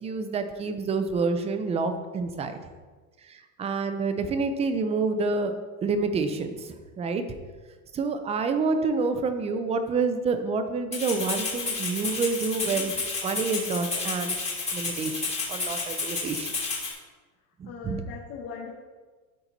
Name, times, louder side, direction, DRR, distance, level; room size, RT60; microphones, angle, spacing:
voice 1, 0.0-2.6 3.2-5.5 5.8-7.2 7.9-12.9 13.2-14.4 14.7-16.5 17.6-18.0, right 4 dB, 15° right, 8 dB, 0.4 m, -28 dB
Rattle (instrument), 10.9-16.9, left 4 dB, 15° left, 2.7 m, -31 dB
voice 2, 17.7-18.7, left 6 dB, 45° left, -6 dB, 1.9 m, -39 dB
12.5 x 4.4 x 4.0 m, 1.4 s
supercardioid pair, 140°, 44 cm